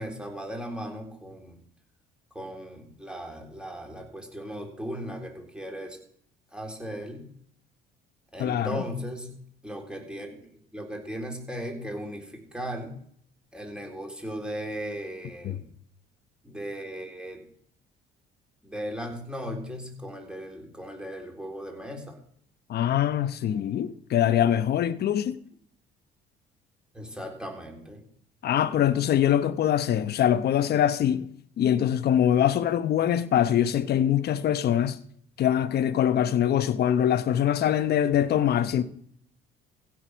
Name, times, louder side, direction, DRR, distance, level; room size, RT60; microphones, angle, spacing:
voice 1, 0.0-1.6 2.3-6.0 6.5-7.3 8.3-9.4 9.6-10.4 10.7-13.0 13.5-15.6 16.4-17.5 18.6-22.2 26.9-28.0, equal, 5° right, 3.6 m, -37 dB
voice 2, 8.4-8.8 15.4-15.6 22.7-25.4 28.4-31.3 31.6-35.0 35.4-38.8, left 10 dB, 55° left, 0.9 m, -23 dB
15.5 x 6.2 x 6.3 m
supercardioid pair, 85°, 19 cm